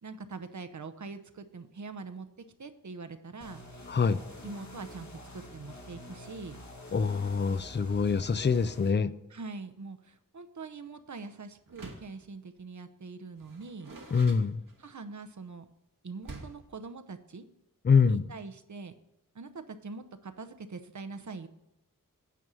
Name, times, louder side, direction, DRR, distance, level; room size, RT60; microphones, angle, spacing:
voice 1, 0.0-2.3 2.6-3.8 4.4-6.6 9.3-13.9 14.8-15.7 16.0-17.4 18.0-19.0 19.3-21.5, right 4 dB, 60° right, 0.8 m, -43 dB
sound 1, 3.4-8.9, left 1 dB, 55° left, 1.6 m, -47 dB
voice 2, 3.9-4.2 6.9-9.1 14.1-14.6 17.8-18.2, left 5 dB, 35° left, 0.4 m, -25 dB
Door, 11.7-12.2 13.4-15.1 16.2-16.7, right 2 dB, 75° right, 1.6 m, -47 dB
9.3 x 5.4 x 6.2 m
wide cardioid pair, 75°, 33 cm